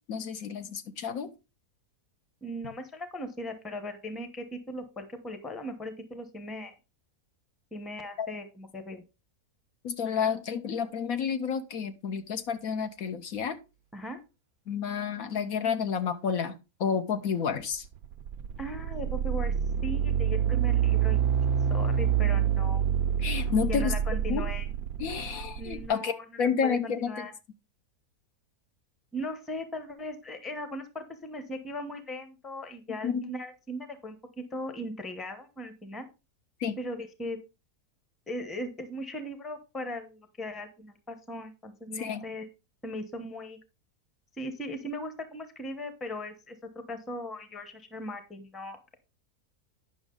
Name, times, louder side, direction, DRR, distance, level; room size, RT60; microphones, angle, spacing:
voice 1, 0.1-1.3 8.2-8.3 9.8-13.6 14.7-17.9 23.2-23.9 24.3-24.4 25.0-26.1 26.4-27.1 33.0-33.3 36.6-36.8 42.0-42.2, left 6 dB, 70° left, 9 dB, 1.2 m, -30 dB
voice 2, 2.4-6.7 7.7-9.0 13.9-14.2 18.6-19.5 19.8-22.9 23.7-24.7 25.6-26.2 26.6-27.3 29.1-34.2 34.5-36.1 36.8-37.4 38.3-42.5 42.8-43.6 44.4-46.6 46.9-49.0, left 1 dB, ahead, 9 dB, 0.7 m, -38 dB
sound 1, 17.8-25.9, right 9 dB, 75° right, 1.0 m, -27 dB
9.8 x 6.0 x 3.8 m, 0.28 s
omnidirectional pair, 1.6 m